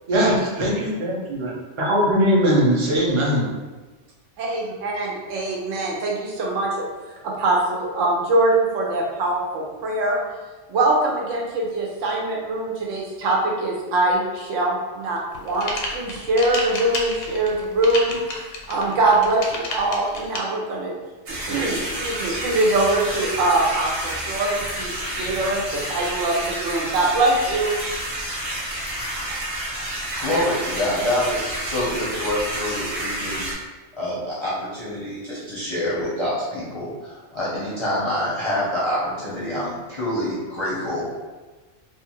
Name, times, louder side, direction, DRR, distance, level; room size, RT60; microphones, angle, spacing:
voice 1, 0.1-1.5 1.8-3.5, equal, 35° right, -5 dB, 0.5 m, -20 dB
voice 2, 5.0-6.9 7.2-10.2 10.7-18.2 18.7-20.9 21.5-27.8, right 2 dB, 85° right, -2 dB, 1.0 m, -23 dB
sound 1, 15.3-20.4, left 2 dB, 85° left, 0.9 m, -30 dB
sound 2, 21.3-33.5, right 1 dB, 55° right, 1.0 m, -29 dB
voice 3, 29.9-33.4 34.0-41.1, left 1 dB, 35° left, -9 dB, 0.5 m, -26 dB
2.5 x 2.4 x 2.9 m, 1.3 s
omnidirectional pair, 1.3 m